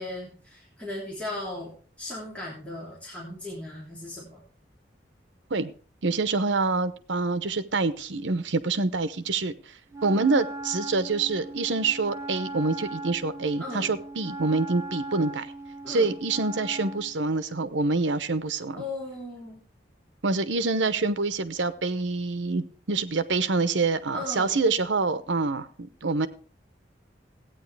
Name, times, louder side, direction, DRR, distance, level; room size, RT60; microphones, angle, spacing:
voice 1, 0.0-4.4 13.6-13.9 15.8-16.2 18.7-19.6 24.1-24.6, left 2 dB, 5° left, 3.2 m, -37 dB
voice 2, 6.0-9.5 10.0-15.5 15.9-18.8 20.2-26.3, right 3 dB, 80° right, 0.8 m, -26 dB
Wind instrument woodwind instrument, 9.9-17.1, right 2 dB, 15° right, 1.0 m, -38 dB
15.0 x 9.1 x 3.4 m
head